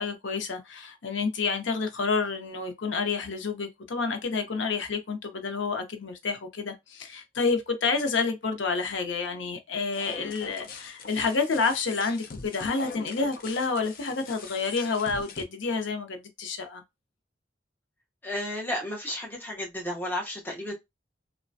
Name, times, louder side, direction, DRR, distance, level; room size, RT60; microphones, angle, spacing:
voice 1, 0.0-16.8, left 4 dB, 90° left, 0.6 m, -29 dB
sound 1, 9.9-15.4, left 4 dB, 50° left, 0.5 m, -43 dB
voice 2, 18.2-20.7, left 1 dB, 10° left, 0.8 m, -33 dB
3.1 x 2.1 x 2.5 m
head